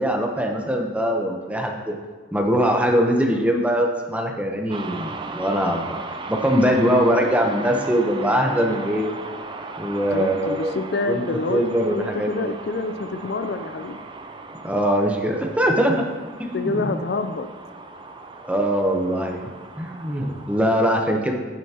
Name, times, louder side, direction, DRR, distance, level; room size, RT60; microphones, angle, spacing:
voice 1, 0.0-2.0 2.3-6.0 6.3-9.1 9.8-10.8 11.1-11.2 11.5-12.5 14.6-16.0 16.4-17.0 18.4-21.3, equal, 5° right, 1 dB, 0.8 m, -22 dB
sound 1, 4.7-20.6, right 3 dB, 25° right, 0.5 m, -37 dB
voice 2, 10.1-11.6 11.9-14.0 15.9-16.0 16.5-17.5, left 3 dB, 60° left, 9 dB, 0.5 m, -27 dB
9.4 x 9.1 x 2.9 m, 1.5 s
head